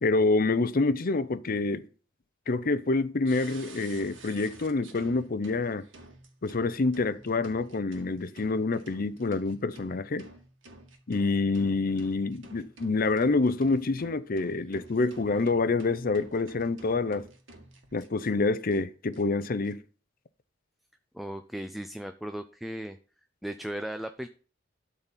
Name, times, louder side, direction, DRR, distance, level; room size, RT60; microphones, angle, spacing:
voice 1, 0.0-1.9 2.5-5.8 6.4-10.3 11.1-17.3 17.9-19.8, left 3 dB, 50° left, 0.6 m, -27 dB
sound 1, 3.2-18.3 18.7-18.8 19.1-19.7, right 2 dB, 90° right, 2.0 m, -51 dB
voice 2, 21.1-23.0 23.4-24.3, right 1 dB, ahead, 0.4 m, -36 dB
12.5 x 4.2 x 7.2 m
head